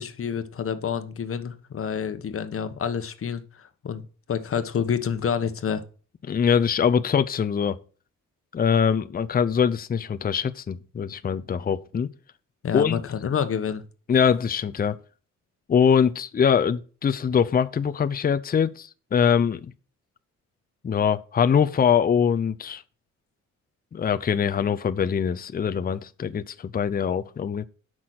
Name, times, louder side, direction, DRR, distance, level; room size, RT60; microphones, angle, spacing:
voice 1, 0.0-4.0 4.3-5.8 12.6-13.8, left 7 dB, 45° left, 1.3 m, -28 dB
voice 2, 6.3-7.8 8.5-12.1 12.7-13.0 14.1-15.0 15.7-19.7 20.8-22.8 23.9-27.7, left 7 dB, 30° left, 0.6 m, -23 dB
8.3 x 6.2 x 6.6 m
cardioid pair, 90°, 30 cm